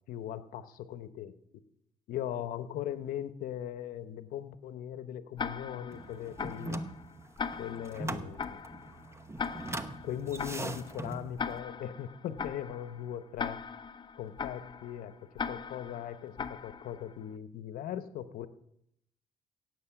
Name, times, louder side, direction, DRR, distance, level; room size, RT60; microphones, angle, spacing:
voice 1, 0.1-1.3 2.1-6.8 7.6-8.6 10.0-13.6 14.1-15.2 15.4-18.5, left 10 dB, 80° left, 12 dB, 0.9 m, -39 dB
Tick-tock, 5.4-17.2, left 5 dB, 30° left, 0.6 m, -40 dB
sound 1, 5.9-11.6, right 2 dB, 20° right, 1.0 m, -41 dB
17.0 x 8.1 x 5.9 m, 0.77 s
cardioid pair, 90°, 14 cm